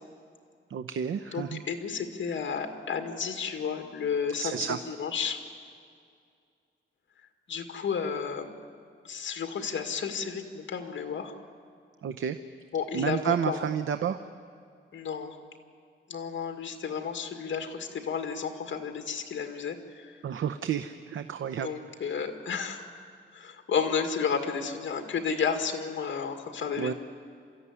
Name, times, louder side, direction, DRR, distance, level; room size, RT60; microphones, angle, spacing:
voice 1, 0.7-1.6 4.4-4.8 12.0-12.4 12.9-14.2 20.2-21.7 22.0-22.2 26.8-26.9, right 8 dB, 80° right, 9 dB, 0.8 m, -31 dB
voice 2, 1.3-5.4 7.5-8.5 9.0-11.3 12.7-13.7 14.9-15.4 16.1-20.2 21.6-22.9 23.3-26.9, left 6 dB, 65° left, 5 dB, 2.0 m, -32 dB
28.5 x 14.0 x 9.8 m, 2.3 s
wide cardioid pair, 170°, 20 cm